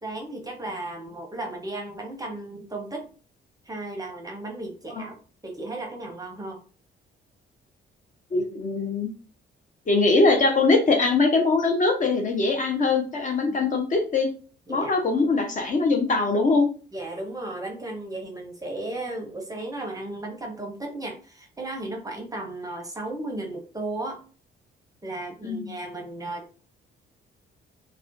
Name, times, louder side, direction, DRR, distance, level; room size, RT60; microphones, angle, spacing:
voice 1, 0.0-3.1 3.7-5.1 5.4-6.6 13.5-13.6 14.7-14.9 16.9-24.2 25.0-26.4, right 2 dB, 20° right, 2 dB, 0.6 m, -35 dB
voice 2, 8.3-9.1 9.9-14.3 14.7-16.7 25.4-25.7, left 3 dB, 40° left, 3 dB, 0.6 m, -22 dB
2.4 x 2.1 x 2.5 m, 0.39 s
cardioid pair, 90°, 20 cm